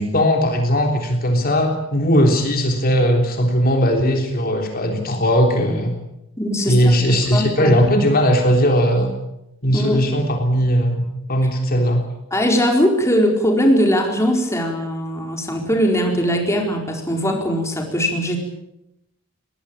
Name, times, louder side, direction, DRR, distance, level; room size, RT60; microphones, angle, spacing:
voice 1, 0.0-5.9 6.7-9.1 9.6-12.0, equal, 45° left, 3 dB, 3.6 m, -18 dB
voice 2, 6.4-7.0 7.3-7.8 9.7-10.0 12.3-18.4, equal, 15° left, 2 dB, 4.5 m, -20 dB
23.0 x 19.5 x 8.9 m, 0.86 s
head